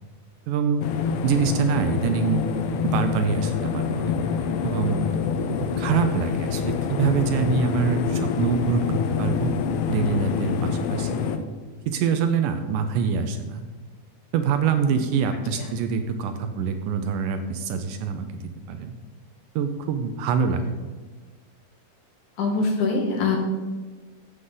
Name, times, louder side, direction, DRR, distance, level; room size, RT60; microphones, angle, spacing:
voice 1, 0.5-0.8 1.2-2.5 2.8-5.1 5.8-9.6 9.9-11.1 11.9-13.6 14.3-18.9 19.6-20.9, right 6 dB, 85° right, 7 dB, 1.9 m, -25 dB
sound 1, 0.8-11.4, left 6 dB, 85° left, 2.7 m, -26 dB
voice 2, 22.4-23.4, left 4 dB, 60° left, 2 dB, 2.6 m, -23 dB
11.5 x 7.9 x 3.9 m, 1.4 s
omnidirectional pair, 4.6 m